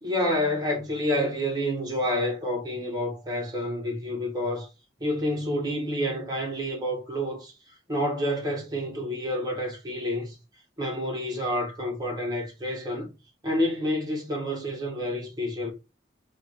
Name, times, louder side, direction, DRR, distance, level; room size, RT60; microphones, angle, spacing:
voice 1, 0.0-4.7 5.0-7.5 7.9-10.4 10.8-13.1 13.4-15.7, equal, 20° right, 1.1 m, -28 dB
3.5 x 2.5 x 2.9 m
head